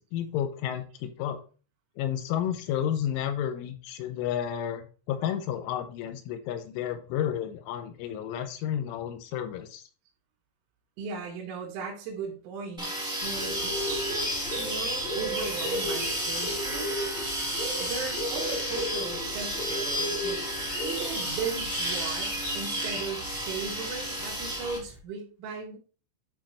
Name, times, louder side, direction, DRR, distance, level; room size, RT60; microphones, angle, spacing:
voice 1, 0.0-1.4 2.0-9.8, left 10 dB, 85° left, 7 dB, 3.2 m, -31 dB
voice 2, 11.0-12.9 13.2-17.0 17.8-20.5 20.8-25.8, right 5 dB, 80° right, -3 dB, 4.0 m, -37 dB
sound 1, 12.8-24.8, equal, ahead, 1.9 m, -32 dB
sound 2, 13.2-25.0, equal, 30° right, 1.1 m, -35 dB
12.0 x 4.3 x 3.1 m, 0.37 s
omnidirectional pair, 5.7 m